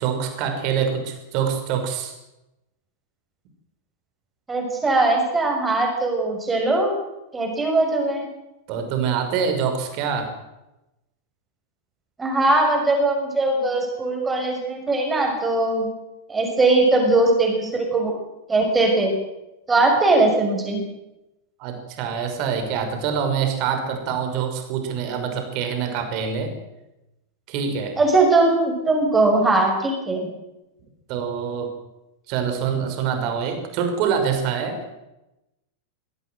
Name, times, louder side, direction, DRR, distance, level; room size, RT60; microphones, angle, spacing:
voice 1, 0.0-2.2 8.7-10.3 21.6-26.5 27.5-28.0 31.1-31.7 32.3-34.8, right 7 dB, 45° right, 5 dB, 5.8 m, -25 dB
voice 2, 4.5-7.0 7.3-8.3 12.2-15.9 16.3-18.1 18.5-19.1 19.7-20.8 28.0-30.2, right 2 dB, 15° right, 2 dB, 6.5 m, -20 dB
23.5 x 17.0 x 8.0 m, 0.94 s
figure-of-eight pair, 90°, 0 cm